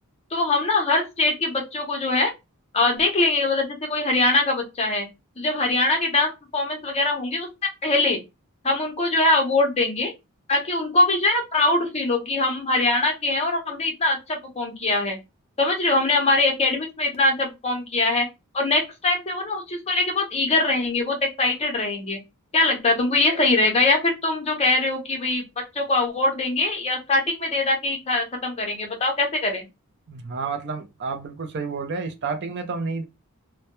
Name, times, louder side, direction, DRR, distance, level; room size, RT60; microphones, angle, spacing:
voice 1, 0.3-2.3 2.7-5.1 5.4-8.2 8.6-10.1 10.5-15.2 15.6-18.3 18.5-22.2 22.5-29.7, left 2 dB, 30° left, 0.7 m, -22 dB
voice 2, 30.1-33.0, right 4 dB, 50° right, 0.4 m, -30 dB
2.2 x 2.1 x 2.9 m
head